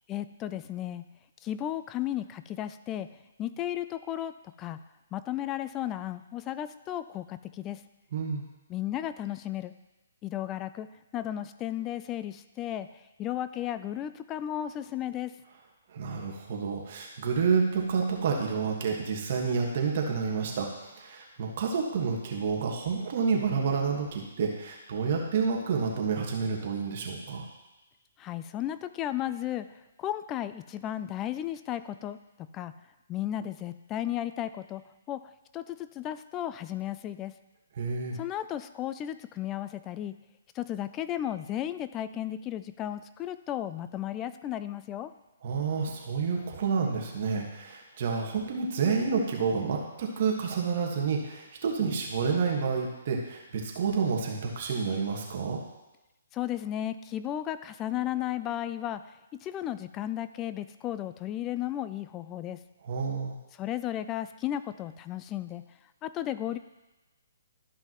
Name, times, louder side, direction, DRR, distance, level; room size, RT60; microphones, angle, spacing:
voice 1, 0.1-1.1 1.4-3.1 3.4-4.8 5.1-7.8 8.7-9.7 10.2-15.4 28.2-32.7 33.1-37.4 38.1-40.2 40.5-45.1 56.3-59.1 59.4-62.6 63.5-65.6 66.0-66.6, left 12 dB, 20° left, 13 dB, 0.3 m, -34 dB
voice 2, 8.1-8.4 15.9-27.5 37.8-38.2 45.4-55.6 62.8-63.3, right 5 dB, 50° right, 0 dB, 1.5 m, -29 dB
12.5 x 5.6 x 3.0 m, 1.0 s
hypercardioid pair, 150°, 0 cm